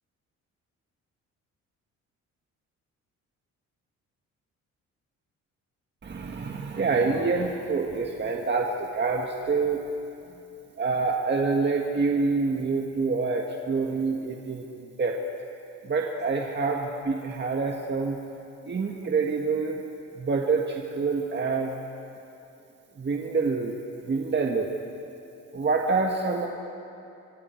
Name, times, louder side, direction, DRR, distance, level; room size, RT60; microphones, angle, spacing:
voice 1, 6.0-9.8 10.8-14.7 15.0-15.2 15.8-18.2 18.7-19.8 20.2-21.8 23.0-23.8 24.0-24.7 25.5-26.5, right 4 dB, 35° right, 1 dB, 1.8 m, -26 dB
26.0 x 25.0 x 4.6 m, 2.7 s
cardioid pair, 90°, 30 cm